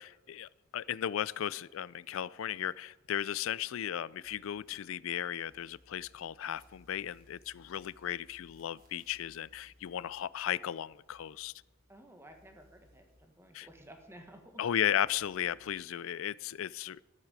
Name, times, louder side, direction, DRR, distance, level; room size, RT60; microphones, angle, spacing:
voice 1, 0.0-11.5 13.5-13.7 14.6-17.0, left 10 dB, 75° left, 21 dB, 0.4 m, -35 dB
sound 1, 4.2-5.1 5.4-12.0 12.2-14.5 14.8-15.8, left 1 dB, 45° right, 3.3 m, -65 dB
voice 2, 11.9-14.6, right 1 dB, 10° right, 4 dB, 1.5 m, -54 dB
12.5 x 8.1 x 7.3 m, 1.1 s
head